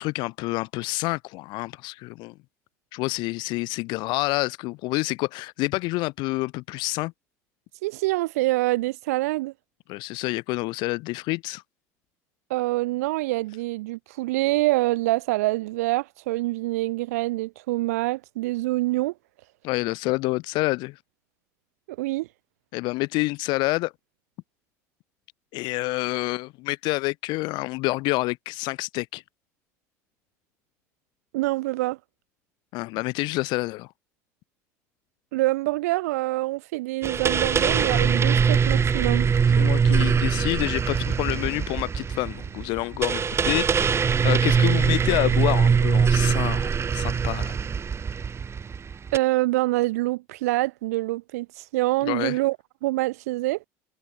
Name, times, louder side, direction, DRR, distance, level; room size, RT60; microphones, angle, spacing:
voice 1, 0.0-2.3 2.9-7.1 9.9-11.6 19.6-20.9 22.7-23.9 25.5-29.2 32.7-33.9 39.6-47.6 52.0-52.4, left 22 dB, 70° left, 5.4 m, -28 dB
voice 2, 7.8-9.5 12.5-19.1 22.0-22.3 31.3-32.0 35.3-39.3 49.1-52.6 52.8-53.6, right 19 dB, 80° right, 6.0 m, -25 dB
sound 1, 37.0-49.2, right 6 dB, 35° right, 5.6 m, -22 dB
hypercardioid pair, 80°, 8 cm